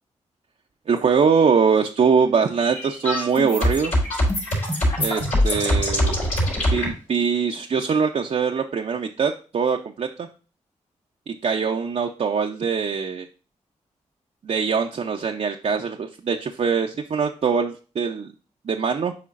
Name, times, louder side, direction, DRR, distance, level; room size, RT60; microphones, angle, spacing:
voice 1, 0.9-3.9 5.0-6.1 6.7-10.3 11.3-13.3 14.4-18.3 18.6-19.1, right 6 dB, 55° right, 2 dB, 0.5 m, -22 dB
sound 1, 2.5-6.9, left 1 dB, 85° left, 3.8 m, -23 dB
8.4 x 4.9 x 2.5 m, 0.36 s
cardioid pair, 45°, 13 cm